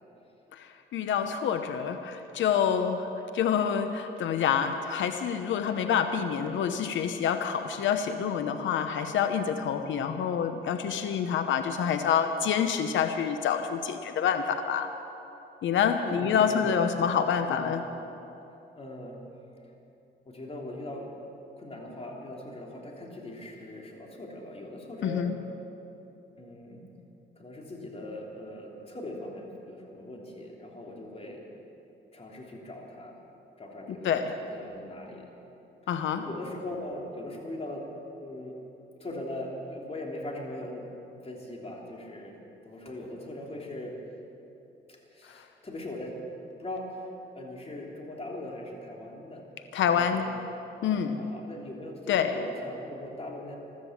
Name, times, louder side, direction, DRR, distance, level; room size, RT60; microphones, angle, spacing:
voice 1, 0.5-3.1 3.3-14.9 15.6-17.8 25.0-25.4 34.0-34.3 35.9-36.2 49.7-50.3 50.8-51.2 52.1-52.3, left 7 dB, 70° left, 8 dB, 0.9 m, -27 dB
voice 2, 9.9-10.3 16.0-16.8 17.5-17.9 18.7-19.2 20.2-21.1 21.6-25.3 26.4-26.9 27.4-31.4 32.1-33.1 33.6-35.3 36.1-37.9 38.2-38.5 39.0-40.9 41.2-42.4 42.6-43.9 44.9-46.2 46.5-47.1 47.3-49.5 49.9-50.3 51.0-53.6, left 1 dB, 30° left, -1 dB, 3.3 m, -40 dB
15.0 x 13.0 x 7.4 m, 2.9 s
cardioid pair, 90°, 20 cm